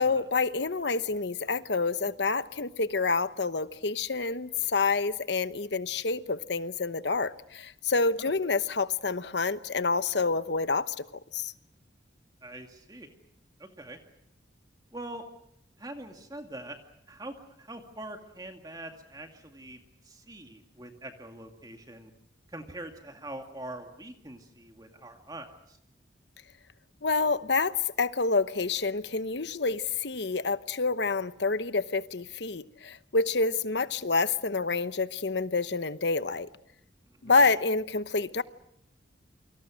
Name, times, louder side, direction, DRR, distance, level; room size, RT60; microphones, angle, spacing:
voice 1, 0.0-11.1 11.3-11.5 27.0-36.5 37.2-38.4, left 4 dB, 65° left, 1.0 m, -28 dB
voice 2, 12.4-13.1 13.6-14.0 14.9-15.2 15.8-16.8 17.1-22.1 22.5-25.8 37.2-37.5, right 1 dB, 20° right, 2.2 m, -43 dB
29.0 x 25.0 x 6.4 m
head